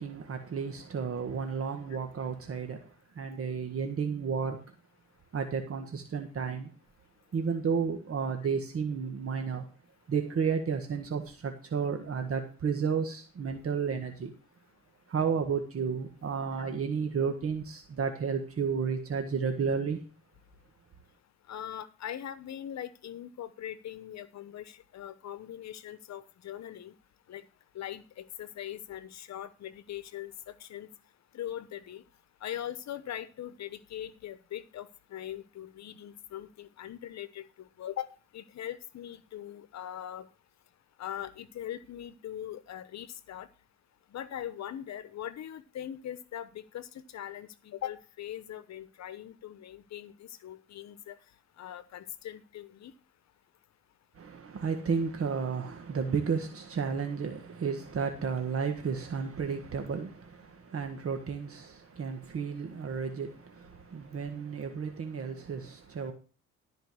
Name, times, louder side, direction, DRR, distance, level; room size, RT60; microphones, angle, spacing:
voice 1, 0.0-2.9 3.1-4.6 5.3-6.7 7.3-9.6 10.1-14.3 15.1-20.0 54.2-66.1, right 6 dB, 50° right, 1.6 m, -32 dB
voice 2, 21.5-26.9 27.3-27.4 27.7-30.9 31.3-32.0 32.4-38.1 38.3-40.3 41.0-43.5 44.1-46.9 47.1-51.1 51.6-52.9, left 11 dB, 65° left, 1.0 m, -41 dB
13.0 x 5.2 x 6.2 m
cardioid pair, 90°, 30 cm